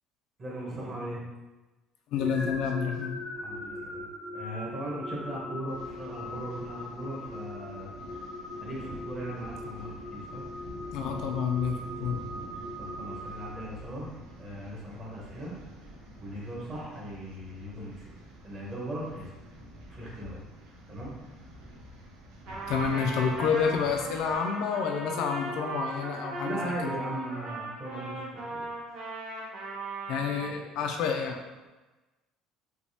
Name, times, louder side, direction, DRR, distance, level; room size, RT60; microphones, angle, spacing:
voice 1, 0.4-1.2 3.3-4.1 4.3-7.9 8.5-10.4 12.8-14.1 14.4-15.5 16.2-18.1 18.4-19.3 19.9-20.4 20.9-21.1 26.4-28.7, right 1 dB, 25° right, -4 dB, 0.8 m, -38 dB
sound 1, 2.1-14.1, left 1 dB, 90° left, 0.8 m, -40 dB
voice 2, 2.1-3.2 10.9-12.2 22.7-27.0 30.1-31.4, left 6 dB, 55° left, 3 dB, 0.3 m, -29 dB
sound 2, 5.7-24.4, right 1 dB, 85° right, 0.7 m, -47 dB
Trumpet, 22.5-30.6, right 2 dB, 55° right, 1.0 m, -37 dB
3.3 x 2.8 x 2.7 m, 1.1 s
cardioid pair, 180°, 0 cm